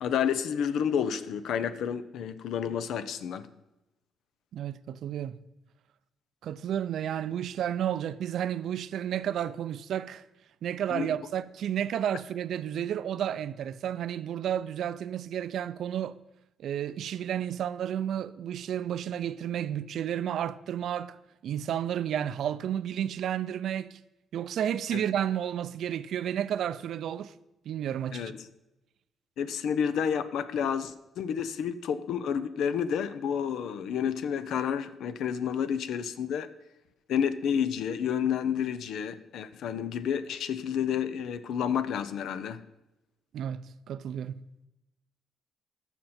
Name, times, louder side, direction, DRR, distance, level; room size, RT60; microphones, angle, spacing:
voice 1, 0.0-3.5 10.9-11.1 24.9-25.0 28.1-28.4 29.4-36.5 37.1-42.6, left 8 dB, 75° left, 0.6 m, -30 dB
voice 2, 4.5-5.4 6.4-10.2 10.6-16.2 16.6-21.2 21.4-24.0 24.3-27.3 27.7-28.3 43.3-44.4, right 10 dB, 70° right, 0.4 m, -32 dB
14.0 x 5.9 x 4.3 m
cardioid pair, 90°, 0 cm